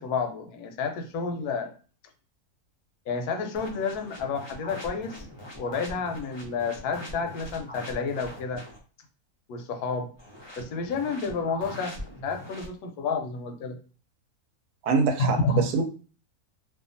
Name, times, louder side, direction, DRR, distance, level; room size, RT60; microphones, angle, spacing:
voice 1, 0.0-1.7 3.1-5.2 5.6-8.6 9.5-10.1 10.6-13.8 15.2-15.6, left 4 dB, 80° left, 5 dB, 1.1 m, -30 dB
sound 1, 3.5-8.8 10.2-12.7, equal, 45° left, 0.3 m, -42 dB
voice 2, 14.8-15.8, right 5 dB, 80° right, 4 dB, 1.1 m, -24 dB
2.7 x 2.3 x 2.5 m, 0.38 s
omnidirectional pair, 1.6 m